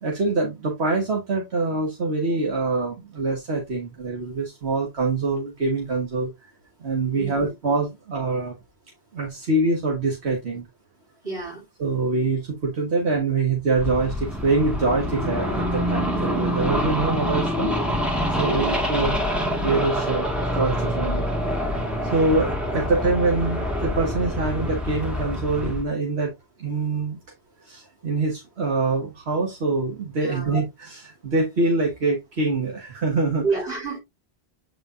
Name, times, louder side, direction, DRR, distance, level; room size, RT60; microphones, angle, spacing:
voice 1, 0.0-6.3 6.8-8.5 9.1-10.7 11.8-17.7 18.4-19.2 19.6-21.5 22.1-26.3 26.6-27.2 27.6-33.4, right 3 dB, 85° right, 1.8 m, -24 dB
voice 2, 7.1-7.5 11.2-11.7 18.3-18.8 30.2-30.6 33.4-34.0, right 4 dB, 60° right, 3.8 m, -30 dB
sound 1, 13.7-25.8, equal, ahead, 2.0 m, -26 dB
7.8 x 4.9 x 2.7 m
omnidirectional pair, 1.1 m